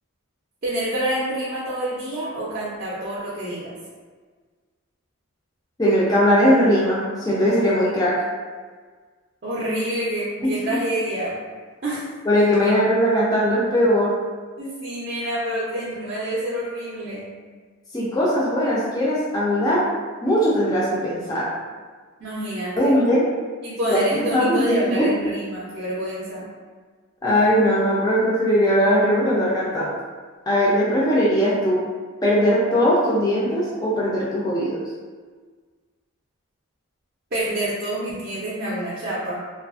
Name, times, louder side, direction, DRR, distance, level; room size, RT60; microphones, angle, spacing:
voice 1, 0.6-3.7 9.4-11.4 11.8-12.1 14.6-17.3 22.2-23.0 23.6-26.5 37.3-39.4, right 1 dB, 45° right, -7 dB, 0.4 m, -27 dB
voice 2, 5.8-8.1 10.4-10.8 12.3-14.1 17.9-19.8 20.2-21.5 22.8-23.2 23.9-25.1 27.2-29.9 30.5-31.8 32.2-34.8, equal, 15° left, -7 dB, 0.4 m, -20 dB
2.6 x 2.4 x 2.4 m, 1.5 s
head